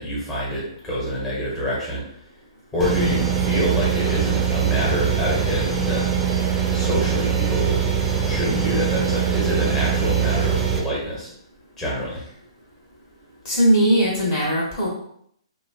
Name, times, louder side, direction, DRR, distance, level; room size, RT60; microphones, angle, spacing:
voice 1, 0.0-2.0 2.7-6.1 6.7-7.8 8.2-11.3 11.8-12.2, equal, 15° left, -7 dB, 1.0 m, -26 dB
sound 1, 2.8-10.8, right 7 dB, 10° right, 0.5 m, -22 dB
voice 2, 13.4-14.9, right 1 dB, 40° left, -4 dB, 1.0 m, -19 dB
2.8 x 2.2 x 2.7 m, 0.68 s
hypercardioid pair, 135°, 3 cm